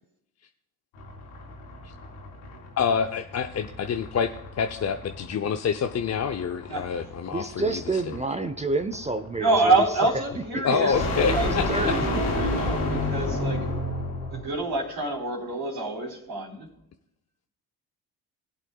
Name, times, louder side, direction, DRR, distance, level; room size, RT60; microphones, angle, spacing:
sound 1, 1.0-14.5, left 1 dB, 85° left, 3.6 m, -31 dB
voice 1, 2.8-7.5 10.6-11.9, left 6 dB, 35° left, 0.7 m, -27 dB
voice 2, 7.3-13.0, right 3 dB, 15° right, 0.7 m, -31 dB
voice 3, 9.4-10.9 11.3-11.5 11.7-13.7 14.3-16.7, right 2 dB, 60° right, 3.4 m, -26 dB
21.0 x 8.1 x 2.4 m
hypercardioid pair, 50°, 44 cm